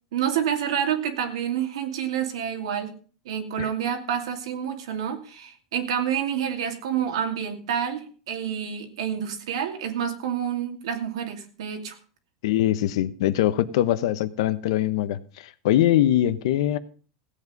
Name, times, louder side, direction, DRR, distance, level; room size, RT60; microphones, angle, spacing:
voice 1, 0.1-2.9 3.2-12.0, right 8 dB, 85° right, 2.6 m, -28 dB
voice 2, 12.4-16.8, left 13 dB, 75° left, 1.0 m, -22 dB
16.5 x 8.4 x 5.3 m
supercardioid pair, 135°, 3 cm